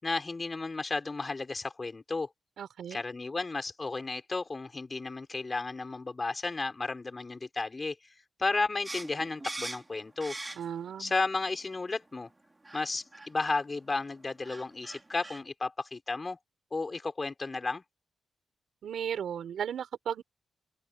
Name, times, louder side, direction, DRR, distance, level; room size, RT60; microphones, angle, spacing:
voice 1, 0.0-2.3 2.9-8.0 8.4-10.3 11.0-12.3 12.7-16.4 16.7-17.8, left 3 dB, 30° left, 6.1 m, -33 dB
voice 2, 2.6-3.0 10.6-11.1 18.8-20.2, right 8 dB, 85° right, 4.6 m, -35 dB
sound 1, 8.8-10.9 11.3-12.0 12.6-12.9 13.1-13.3 14.1-14.2 14.4-15.4, right 2 dB, 20° right, 4.5 m, -41 dB
open air
cardioid pair, 80°, 0 cm